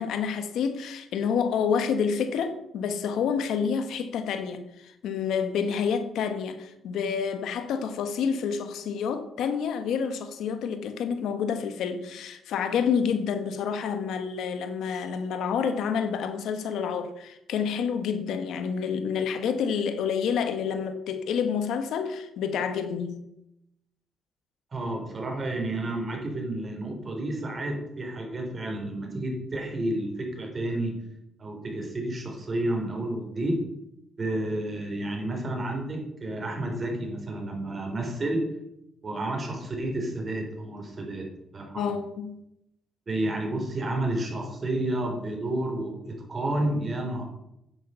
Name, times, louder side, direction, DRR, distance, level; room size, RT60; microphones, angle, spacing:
voice 1, 0.0-23.2 41.7-42.4, left 6 dB, 80° left, 1.2 m, -28 dB
voice 2, 24.7-31.0 31.4-33.6 34.2-38.5 39.0-41.3 41.5-42.0 43.1-47.2, right 1 dB, 35° right, 4.0 m, -30 dB
9.7 x 9.1 x 5.7 m
cardioid pair, 90°, 0 cm